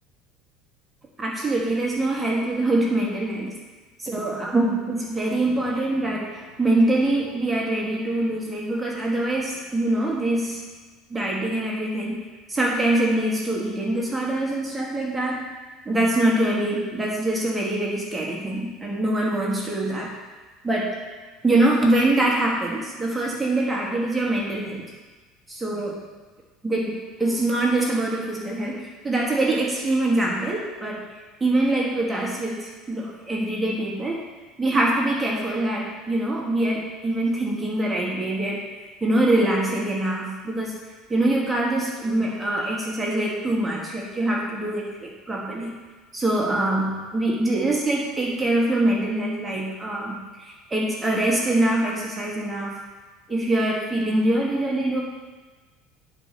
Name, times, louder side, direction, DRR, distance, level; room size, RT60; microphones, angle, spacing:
voice 1, 1.2-3.5 4.0-10.6 11.1-15.5 15.8-20.1 20.6-20.9 21.4-24.8 25.5-26.0 26.6-31.1 31.4-34.2 34.6-38.6 39.0-40.8 41.1-45.7 46.1-52.8 53.3-55.0, right 1 dB, 10° right, -3 dB, 1.3 m, -24 dB
9.7 x 4.2 x 5.1 m, 1.3 s
cardioid pair, 145°, 0 cm